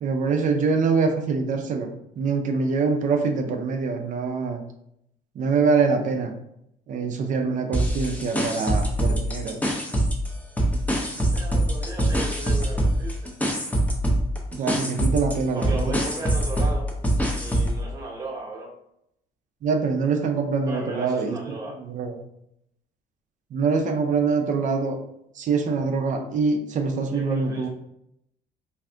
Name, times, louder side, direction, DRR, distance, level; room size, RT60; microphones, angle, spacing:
voice 1, 0.0-4.6 5.4-6.4 6.9-9.6 14.5-16.0 19.6-22.2 23.5-25.0 25.4-27.7, right 4 dB, 50° right, 5 dB, 0.5 m, -24 dB
sound 1, 7.7-10.3 10.6-17.8, right 1 dB, 10° left, 0.6 m, -24 dB
voice 2, 11.3-13.3 15.5-16.9 17.2-18.7 20.6-21.8 27.1-27.7, right 3 dB, 20° right, -3 dB, 0.9 m, -35 dB
2.6 x 2.4 x 3.3 m, 0.77 s
cardioid pair, 110°, 17 cm